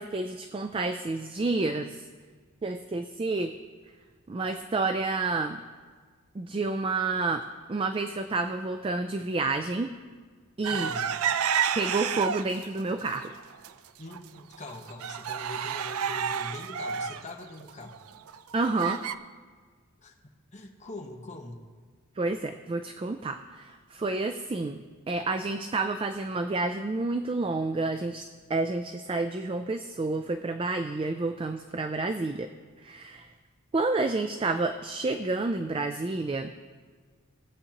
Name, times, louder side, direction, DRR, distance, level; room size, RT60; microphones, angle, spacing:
voice 1, 0.0-2.0 2.6-3.5 4.3-5.6 6.3-7.4 7.7-9.9 10.6-10.9 11.7-13.3 18.5-19.0 22.2-24.8 25.1-32.5 32.8-33.3 33.7-36.5, right 3 dB, 25° right, 8 dB, 0.3 m, -29 dB
sound 1, 10.6-12.6 13.1-13.7 14.1-14.2 14.5-19.1, right 7 dB, 85° right, 0.4 m, -30 dB
voice 2, 10.7-11.1 14.0-18.2 20.0-20.2 20.5-21.6, left 2 dB, 35° left, 2 dB, 1.1 m, -43 dB
19.0 x 7.9 x 2.9 m, 1.6 s
head